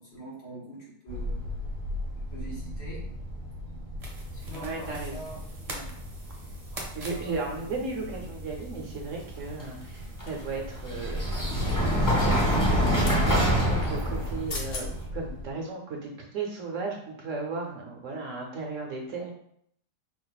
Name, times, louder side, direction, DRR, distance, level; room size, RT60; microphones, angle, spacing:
voice 1, 0.0-1.5 2.3-3.2 4.3-5.4 6.7-7.6, right 1 dB, 80° left, -6 dB, 2.3 m, -44 dB
sound 1, 1.1-15.5, equal, 20° left, 0.6 m, -29 dB
sound 2, 4.0-15.1, right 2 dB, 30° right, 0.7 m, -45 dB
voice 2, 4.5-5.2 5.7-5.9 6.9-11.2 11.8-19.3, right 3 dB, 60° right, 0 dB, 1.0 m, -35 dB
sound 3, 10.3-10.8 12.6-13.2 14.2-14.3 14.5-14.9 15.4-15.6, left 3 dB, 55° left, 1.1 m, -39 dB
5.1 x 2.5 x 4.0 m, 0.69 s
omnidirectional pair, 1.7 m